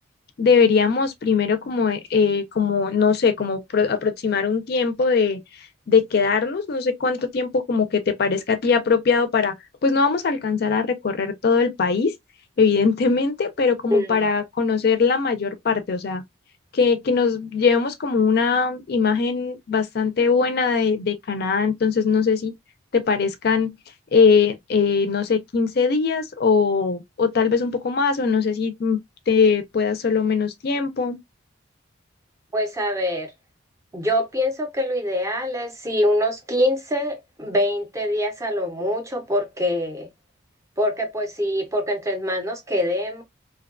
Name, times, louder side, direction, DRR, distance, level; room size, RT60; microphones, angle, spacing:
voice 1, 0.4-9.5 9.8-12.1 12.6-16.2 16.7-22.5 22.9-23.7 24.1-29.0 29.3-31.2, left 5 dB, 50° left, 0.4 m, -21 dB
voice 2, 13.9-14.3 32.5-33.3 33.9-40.1 40.8-43.2, left 1 dB, 15° right, 0.5 m, -24 dB
2.6 x 2.2 x 2.3 m
head